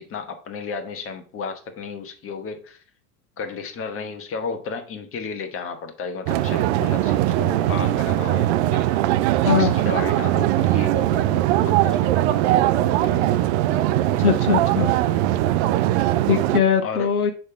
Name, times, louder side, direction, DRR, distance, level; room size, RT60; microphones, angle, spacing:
voice 1, 0.0-2.8 3.4-8.9 9.5-12.7 13.0-13.2 16.8-17.1, left 5 dB, 30° left, 5 dB, 1.2 m, -33 dB
sound 1, 6.3-16.6, right 14 dB, 50° right, 0.5 m, -20 dB
voice 2, 14.2-14.9 16.3-17.3, left 7 dB, 90° left, 7 dB, 0.8 m, -20 dB
6.6 x 3.4 x 4.4 m, 0.41 s
hypercardioid pair, 80°, 44 cm